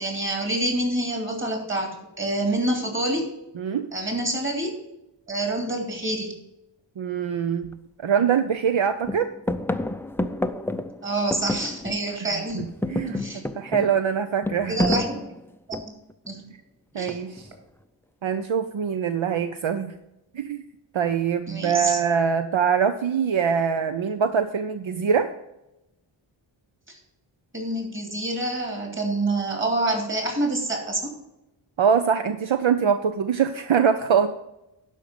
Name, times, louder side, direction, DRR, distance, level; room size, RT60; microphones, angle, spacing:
voice 1, 0.0-3.3 3.9-4.8 5.3-6.3 11.0-12.6 13.2-13.4 14.7-15.2 15.7-15.9 16.3-16.4 17.0-17.2 21.5-22.0 26.9-27.0 27.5-31.1, right 2 dB, 25° right, 2 dB, 3.0 m, -27 dB
voice 2, 3.6-3.9 7.0-9.3 12.5-13.2 13.6-14.8 16.9-17.5 18.2-19.9 20.3-20.6 20.9-25.3 31.8-34.3, right 7 dB, 70° right, 9 dB, 0.7 m, -23 dB
sound 1, 7.6-7.7 8.2-8.8 9.0-12.2 12.5-16.1 17.1-17.6, left 1 dB, 5° left, 0.4 m, -29 dB
12.0 x 5.2 x 5.2 m, 0.89 s
wide cardioid pair, 90°, 49 cm